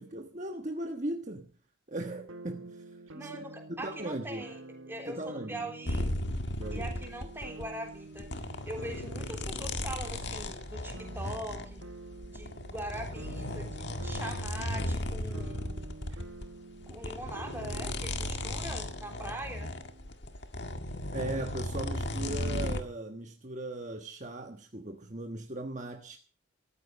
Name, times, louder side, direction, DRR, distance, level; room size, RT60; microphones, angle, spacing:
voice 1, 0.0-1.5 1.9-3.3 3.7-4.4 5.1-5.7 6.6-6.9 21.1-26.2, right 1 dB, 35° right, 1.3 m, -38 dB
sound 1, 2.3-20.1, right 2 dB, 75° right, 1.8 m, -49 dB
voice 2, 3.1-6.1 6.7-8.3 8.7-11.8 12.3-15.9 16.9-19.7, right 1 dB, 10° right, 3.6 m, -42 dB
sound 2, 5.9-7.7 8.1-16.6 16.8-22.8, left 1 dB, 55° left, 1.8 m, -36 dB
14.5 x 14.0 x 5.3 m
head